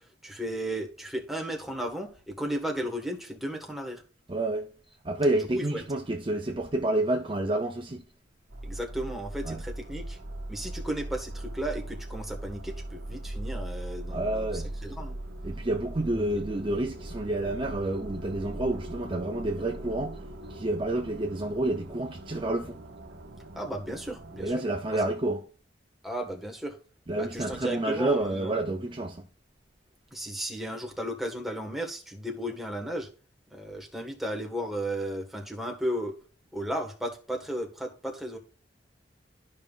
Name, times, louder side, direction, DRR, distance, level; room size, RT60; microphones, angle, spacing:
voice 1, 0.0-4.0 5.5-5.8 8.6-10.2 10.5-15.2 16.0-16.4 23.5-24.5 24.9-25.0 26.0-26.8 27.2-28.6 30.1-33.1 33.5-36.1 36.5-38.4, right 1 dB, ahead, 1.4 m, -34 dB
voice 2, 4.3-4.7 5.0-8.0 9.5-9.6 14.1-14.7 15.4-20.2 20.5-22.8 24.4-25.5 27.1-29.2, right 1 dB, 30° right, 0.6 m, -29 dB
sound 1, 8.5-24.6, right 1 dB, 70° right, 1.2 m, -40 dB
13.0 x 5.4 x 2.4 m
head